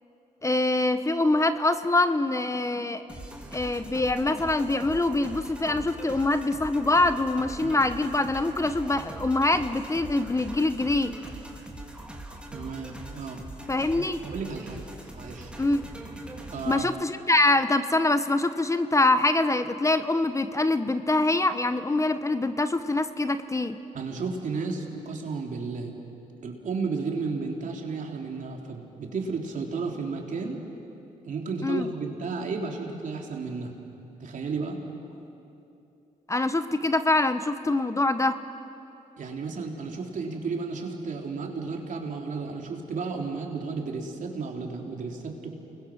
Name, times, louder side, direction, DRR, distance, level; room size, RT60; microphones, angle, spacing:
voice 1, 0.4-3.1 3.5-11.1 13.7-14.2 15.6-15.8 16.7-23.8 31.6-31.9 36.3-38.4, left 2 dB, 20° left, 11 dB, 1.0 m, -24 dB
sound 1, 3.1-16.8, right 1 dB, 5° right, 3.4 m, -42 dB
voice 2, 12.5-13.4 13.9-15.5 16.5-16.9 23.9-25.9 26.4-30.6 31.2-33.7 34.2-34.8 39.2-45.6, right 4 dB, 60° right, 1 dB, 3.5 m, -33 dB
29.0 x 21.5 x 6.5 m, 2.8 s
cardioid pair, 70°, 15 cm